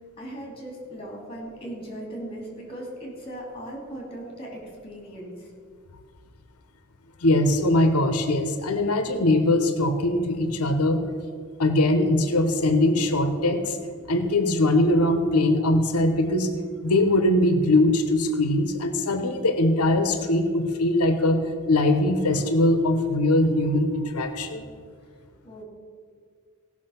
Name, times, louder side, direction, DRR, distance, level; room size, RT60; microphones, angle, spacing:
voice 1, 0.2-5.5 25.4-25.6, right 1 dB, 25° left, -1 dB, 3.0 m, -38 dB
voice 2, 7.2-11.0 11.6-13.8 14.1-16.5 16.8-21.4 21.7-24.6, left 1 dB, 85° left, 8 dB, 0.9 m, -21 dB
16.5 x 6.1 x 5.8 m, 2.1 s
head